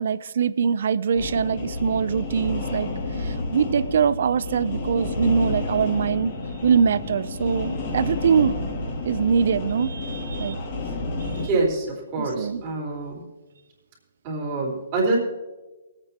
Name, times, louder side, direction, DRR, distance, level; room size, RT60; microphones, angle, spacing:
voice 1, 0.0-2.9 3.2-6.3 6.6-8.6 9.1-10.6 11.2-11.3 12.2-12.6, right 6 dB, 60° right, 17 dB, 0.5 m, -23 dB
sound 1, 1.1-11.5, left 2 dB, 40° left, 2.3 m, -30 dB
voice 2, 11.4-13.2 14.2-15.2, right 3 dB, 25° right, -4 dB, 3.8 m, -26 dB
24.0 x 8.9 x 2.9 m, 1.1 s
hypercardioid pair, 165°, 0 cm